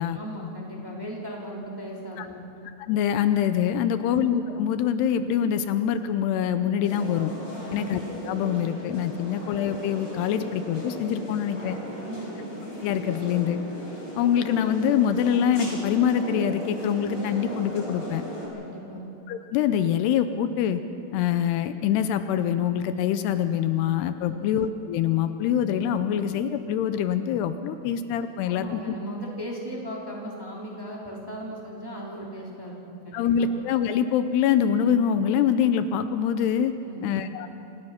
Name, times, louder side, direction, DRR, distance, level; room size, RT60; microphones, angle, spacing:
voice 1, 0.1-2.4 3.8-4.1 7.6-7.9 9.2-9.3 12.0-12.4 18.5-19.1 24.2-24.5 28.4-33.5 36.8-37.1, equal, 5° right, -3 dB, 2.8 m, -38 dB
voice 2, 2.9-7.3 7.7-8.0 8.3-11.8 12.8-13.6 14.2-18.2 19.3-20.8 21.1-28.8 33.1-36.7 37.0-37.5, left 9 dB, 80° left, 10 dB, 2.8 m, -24 dB
sound 1, 6.8-18.5, equal, 20° left, 7.0 m, -37 dB
27.5 x 20.5 x 5.9 m, 2.8 s
omnidirectional pair, 4.8 m